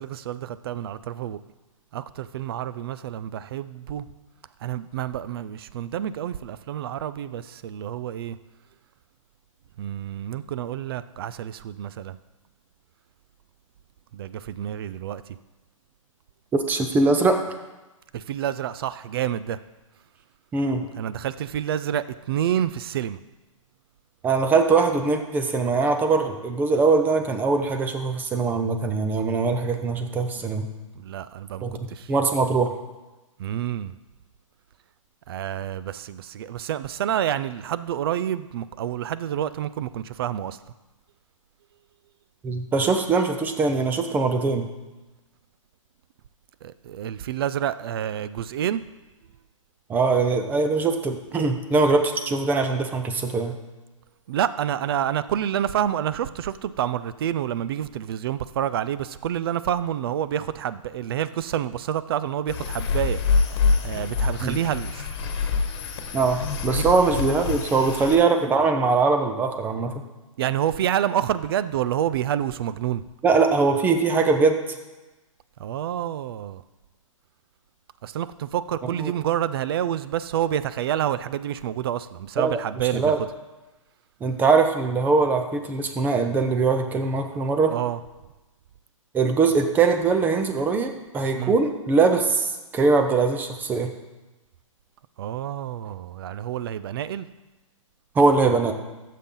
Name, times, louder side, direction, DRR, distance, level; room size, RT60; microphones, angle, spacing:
voice 1, 0.0-1.4 1.9-4.1 4.6-8.4 9.8-12.2 14.1-15.2 18.1-19.6 21.0-23.2 30.9-32.1 33.4-33.9 35.3-40.6 46.6-48.8 54.3-63.4 63.8-65.0 66.7-66.8 70.4-73.0 75.6-76.6 78.0-83.1 87.7-88.0 91.3-91.6 95.2-97.3, right 10 dB, 45° right, 15 dB, 0.5 m, -28 dB
voice 2, 16.5-17.4 20.5-20.8 24.2-30.7 31.6-32.7 42.4-44.7 49.9-53.5 64.4-64.6 66.1-70.0 73.2-74.6 79.0-79.1 82.4-83.2 84.2-87.7 89.1-93.9 98.2-98.7, right 4 dB, 10° right, 6 dB, 0.7 m, -22 dB
sound 1, 62.5-68.2, left 5 dB, 45° left, 1.4 m, -26 dB
13.0 x 7.4 x 3.8 m, 1.1 s
hypercardioid pair, 145°, 17 cm